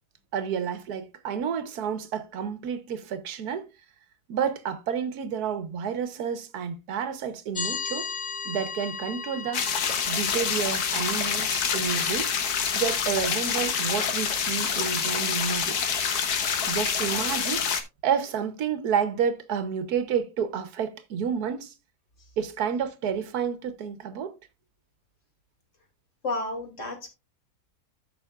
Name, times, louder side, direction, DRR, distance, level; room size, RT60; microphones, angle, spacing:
voice 1, 0.3-3.6 4.3-8.1 8.4-9.6 10.1-12.3 12.7-15.8 16.7-17.7 18.0-21.7 22.4-24.3, right 7 dB, 90° right, 1.4 m, -30 dB
sound 1, 7.5-17.6, left 5 dB, 30° left, 0.5 m, -39 dB
sound 2, 9.5-17.8, left 7 dB, 90° left, 1.6 m, -27 dB
voice 2, 26.2-27.1, left 2 dB, 55° left, 2.8 m, -31 dB
13.5 x 6.2 x 2.4 m
omnidirectional pair, 1.6 m